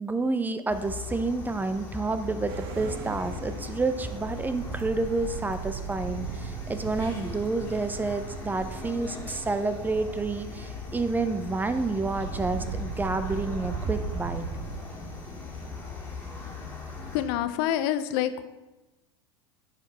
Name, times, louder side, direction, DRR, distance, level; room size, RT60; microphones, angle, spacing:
voice 1, 0.0-14.4, right 3 dB, 15° right, 10 dB, 0.5 m, -29 dB
sound 1, 0.7-17.2, left 3 dB, 15° left, 2.5 m, -40 dB
sound 2, 2.5-14.8, right 6 dB, 60° right, 0.8 m, -38 dB
voice 2, 17.1-18.5, left 11 dB, 60° left, 11 dB, 0.6 m, -27 dB
10.0 x 5.3 x 3.4 m, 1.1 s
hypercardioid pair, 85°, 14 cm